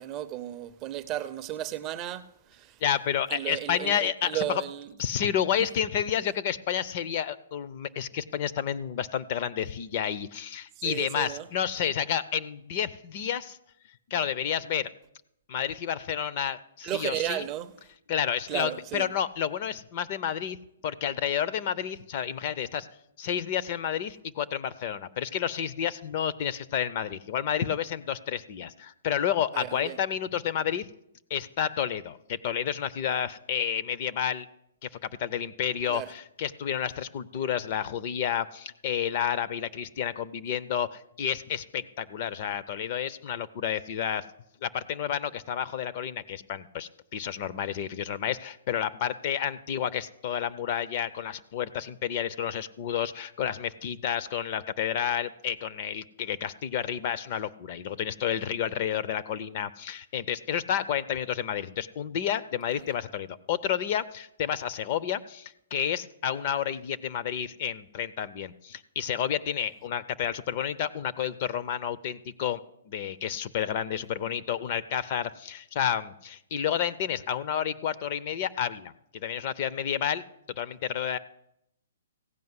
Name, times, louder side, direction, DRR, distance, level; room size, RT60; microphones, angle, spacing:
voice 1, 0.0-2.8 3.3-4.9 10.8-11.5 16.8-17.7 18.5-19.1 29.5-30.0 35.9-36.1 62.7-62.8, right 13 dB, 20° right, 0.4 m, -34 dB
voice 2, 2.8-4.6 5.0-13.6 14.1-14.9 15.5-17.4 18.1-20.6 20.8-22.9 23.2-30.9 31.3-34.5 34.8-44.2 44.6-72.6 72.9-80.2 80.6-81.2, left 9 dB, 35° left, 0.4 m, -30 dB
15.5 x 5.2 x 9.5 m
hypercardioid pair, 165°, 0 cm